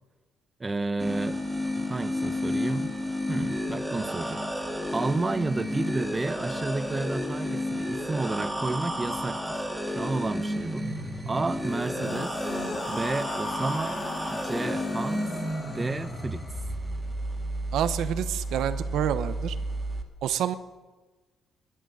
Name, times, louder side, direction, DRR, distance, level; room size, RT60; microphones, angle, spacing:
voice 1, 0.6-1.4 1.8-2.9 3.3-10.9 11.3-12.4 12.9-15.3 15.6-16.4, right 3 dB, 25° right, 12 dB, 0.8 m, -31 dB
sound 1, 1.0-20.0, equal, 5° right, 2.4 m, -32 dB
sound 2, 11.5-16.7, left 4 dB, 70° left, 2.8 m, -39 dB
voice 2, 17.7-19.6 20.2-20.5, right 10 dB, 75° right, 12 dB, 0.8 m, -28 dB
12.5 x 11.0 x 7.9 m, 1.2 s
cardioid pair, 80°, 0 cm